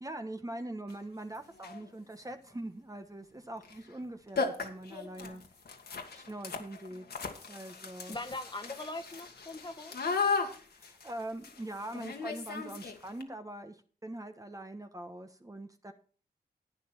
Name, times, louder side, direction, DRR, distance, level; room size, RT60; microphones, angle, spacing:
voice 1, 0.0-5.4 6.1-7.1 7.5-8.2 10.7-15.9, right 1 dB, 20° right, 6 dB, 1.2 m, -42 dB
sound 1, 0.9-1.0 1.5-1.9 3.6-3.8 4.0-4.1 4.4-13.2, left 4 dB, 70° left, 1.9 m, -36 dB
voice 2, 8.1-10.0, left 2 dB, 25° left, 8 dB, 1.5 m, -41 dB
11.5 x 9.4 x 4.4 m, 0.41 s
cardioid pair, 65°, 17 cm